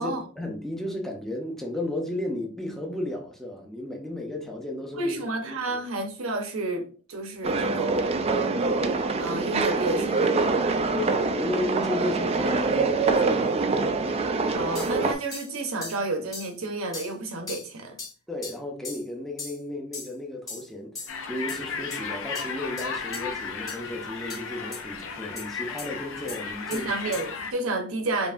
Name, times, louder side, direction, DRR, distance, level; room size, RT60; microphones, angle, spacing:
voice 1, 0.0-5.1 5.5-5.8 10.9-13.5 18.3-27.2, left 1 dB, ahead, 0.7 m, -34 dB
voice 2, 5.0-6.8 7.1-8.1 9.2-10.4 14.6-18.0 26.7-28.3, right 2 dB, 80° right, 0.9 m, -30 dB
sound 1, 7.4-15.1, right 3 dB, 30° right, 0.4 m, -25 dB
sound 2, 14.7-14.9 15.3-15.5 15.8-16.0 16.3-16.5 16.9-17.1 17.5-17.7 18.0-18.1 18.4-18.6 18.8-19.0 19.4-19.6 19.9-20.1 20.5-20.7 20.9-21.1 21.5-21.6 21.9-22.0 22.3-22.4 22.8-22.9 23.1-23.2 23.7-23.8 24.3-24.4 24.7-24.8 25.4-25.5 25.8-25.9 26.3-26.4 26.7-26.8 27.1-27.2, left 3 dB, 15° left, 1.7 m, -38 dB
sound 3, 21.1-27.5, left 5 dB, 65° left, 0.5 m, -35 dB
5.2 x 2.7 x 2.5 m
head